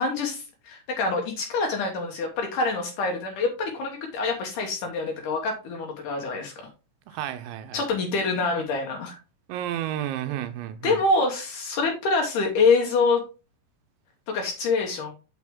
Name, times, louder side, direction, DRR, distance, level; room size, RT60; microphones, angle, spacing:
voice 1, 0.0-6.5 7.7-9.2 10.8-13.2 14.3-15.1, left 3 dB, 80° left, 1.8 m, -25 dB
voice 2, 7.1-7.8 9.5-11.0, right 11 dB, 90° right, 3.1 m, -32 dB
6.4 x 6.2 x 3.5 m
omnidirectional pair, 5.3 m